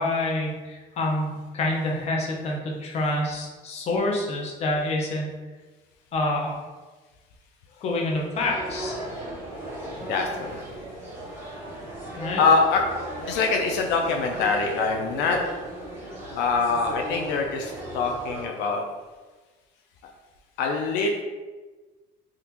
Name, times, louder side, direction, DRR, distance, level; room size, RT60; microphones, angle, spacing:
voice 1, 0.0-5.3 6.1-6.6 7.8-9.0 12.2-12.4, left 2 dB, 40° left, -1 dB, 0.6 m, -27 dB
sound 1, 8.3-18.4, right 1 dB, 15° right, 0.8 m, -36 dB
voice 2, 10.0-10.6 12.4-12.8 13.2-15.4 16.3-18.8 20.6-21.2, left 4 dB, 85° left, 2 dB, 0.4 m, -24 dB
3.5 x 2.4 x 2.9 m, 1.3 s
cardioid pair, 145°, 17 cm